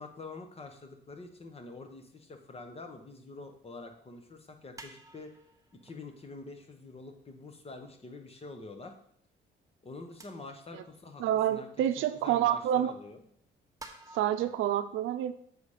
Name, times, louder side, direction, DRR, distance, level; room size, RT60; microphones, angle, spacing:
voice 1, 0.0-5.3 5.7-8.9 9.8-11.7 12.0-13.2, left 3 dB, 30° left, 5 dB, 1.1 m, -46 dB
sound 1, 4.8-6.4 7.0-7.1 8.1-8.2 9.2-9.3 10.2-10.8 11.3-11.4 12.4-12.5 13.5-14.6, right 2 dB, 15° right, 1.0 m, -52 dB
voice 2, 11.2-12.9 14.1-15.3, right 11 dB, 85° right, 11 dB, 0.5 m, -28 dB
6.9 x 4.2 x 5.0 m, 0.66 s
cardioid pair, 90°, 20 cm